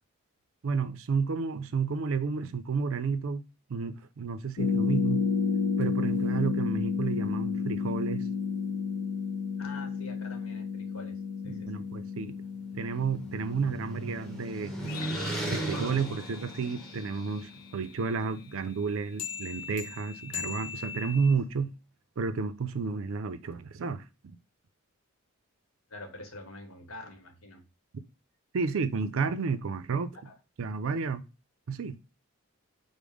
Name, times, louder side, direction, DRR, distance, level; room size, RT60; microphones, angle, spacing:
voice 1, 0.6-3.4 3.7-5.2 5.8-8.2 11.4-12.4 12.7-14.9 15.5-21.7 22.2-24.4 28.5-30.1 30.6-31.2 31.7-32.0, right 5 dB, 65° right, 0.4 m, -31 dB
sound 1, 4.6-17.6 19.2-21.4, left 5 dB, 85° left, 0.6 m, -33 dB
voice 2, 9.6-11.8 25.9-27.6 30.2-30.3, left 2 dB, 70° left, 1.0 m, -46 dB
sound 2, 12.6-17.3, right 1 dB, ahead, 0.8 m, -37 dB
5.2 x 2.0 x 4.8 m
head